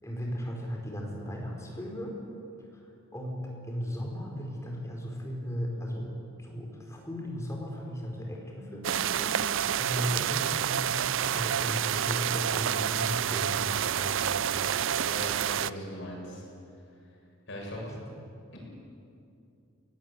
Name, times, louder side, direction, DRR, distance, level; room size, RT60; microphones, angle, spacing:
voice 1, 0.0-2.1 2.7-2.9 3.1-6.0 6.4-14.2 17.8-18.0, equal, 15° left, -1 dB, 4.5 m, -36 dB
sound 1, 8.8-15.7, right 9 dB, 65° right, 0.5 m, -28 dB
voice 2, 15.0-16.4 17.5-17.8 18.5-18.6, equal, 60° left, -2 dB, 7.3 m, -39 dB
22.0 x 18.0 x 8.4 m, 2.6 s
head